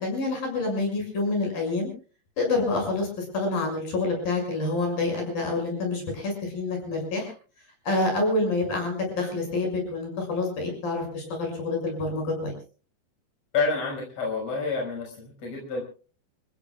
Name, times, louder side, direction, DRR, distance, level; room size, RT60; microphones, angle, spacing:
voice 1, 0.0-1.9 2.4-7.3 7.8-12.5, left 3 dB, 60° left, 2 dB, 8.1 m, -27 dB
voice 2, 13.5-15.8, left 4 dB, 40° left, 0 dB, 6.7 m, -28 dB
29.5 x 16.0 x 2.4 m, 0.38 s
omnidirectional pair, 4.6 m